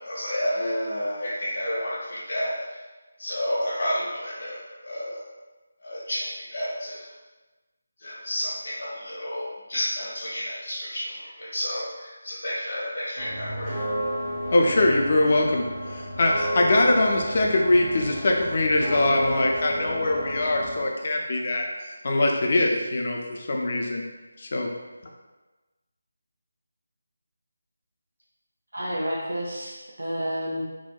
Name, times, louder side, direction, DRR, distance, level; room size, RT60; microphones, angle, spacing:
voice 1, 0.0-2.6 3.2-4.6 4.8-5.2 5.8-7.0 8.0-13.8, equal, 65° left, -8 dB, 0.8 m, -30 dB
Street ambience and Mosteiro de São Bento's bell, 13.2-20.9, equal, 15° right, 0.6 m, -31 dB
voice 2, 14.5-15.6 15.9-21.7 22.0-24.0 24.4-24.7, left 2 dB, 45° left, 0 dB, 0.4 m, -22 dB
voice 3, 28.7-30.6, equal, 75° right, -6 dB, 0.4 m, -30 dB
2.7 x 2.1 x 2.2 m, 1.2 s
figure-of-eight pair, 160°, 0 cm